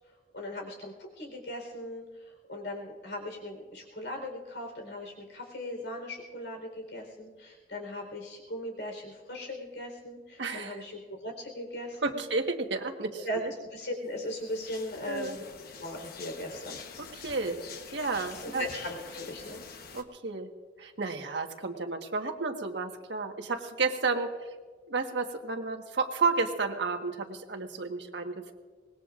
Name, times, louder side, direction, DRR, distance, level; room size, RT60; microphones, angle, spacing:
voice 1, 0.3-12.2 13.2-13.4 13.7-15.4 15.7-16.8 18.4-19.6, left 1 dB, 85° left, 1 dB, 4.2 m, -39 dB
voice 2, 10.4-10.8 12.0-13.5 15.1-15.4 17.0-17.6 17.9-18.6 19.9-20.5 20.8-24.3 24.9-28.3, right 4 dB, 85° right, 4 dB, 1.5 m, -31 dB
sound 1, 14.2-20.0, left 5 dB, 60° left, 1.1 m, -46 dB
24.5 x 20.5 x 2.5 m, 1.4 s
head